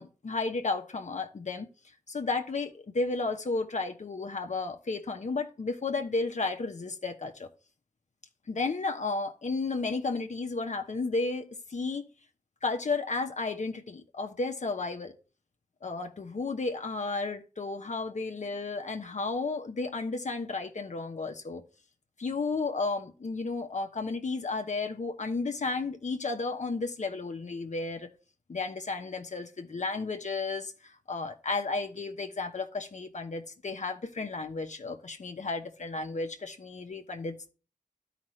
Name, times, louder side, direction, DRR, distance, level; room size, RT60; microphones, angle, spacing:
voice 1, 0.0-1.7 2.1-7.5 8.5-12.0 12.6-15.1 15.8-21.6 22.2-28.1 28.5-37.5, left 3 dB, 60° left, 1.0 m, -33 dB
11.5 x 5.1 x 3.2 m
cardioid pair, 45°, 14 cm